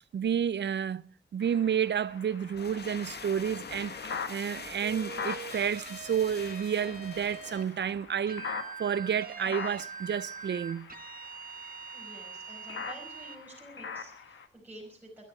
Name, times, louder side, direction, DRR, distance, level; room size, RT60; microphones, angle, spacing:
voice 1, 0.1-10.9, right 8 dB, 65° right, 0.6 m, -31 dB
sound 1, 1.4-14.5, left 6 dB, 80° left, 1.8 m, -43 dB
sound 2, 2.4-8.1, left 5 dB, 55° left, 1.7 m, -45 dB
sound 3, 4.8-7.7 8.3-13.4, right 5 dB, 50° right, 1.9 m, -43 dB
voice 2, 11.9-15.3, right 1 dB, 10° right, 5.1 m, -50 dB
22.0 x 12.5 x 4.5 m
wide cardioid pair, 130°, 20 cm